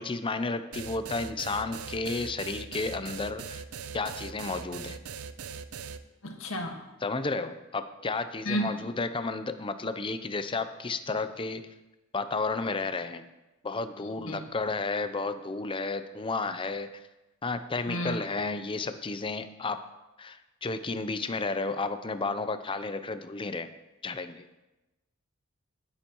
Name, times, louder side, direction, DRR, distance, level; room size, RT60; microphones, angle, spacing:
voice 1, 0.0-3.6 3.9-5.0 7.0-11.6 12.1-13.3 13.6-16.9 17.4-19.9 20.2-23.7 24.0-24.5, left 3 dB, 25° left, 10 dB, 0.6 m, -32 dB
sound 1, 0.7-6.0, right 6 dB, 90° right, 0.6 m, -40 dB
voice 2, 6.2-6.8 8.5-8.7 14.0-14.4 17.9-18.2, equal, 75° left, 2 dB, 1.8 m, -32 dB
16.5 x 9.9 x 3.0 m, 1.0 s
head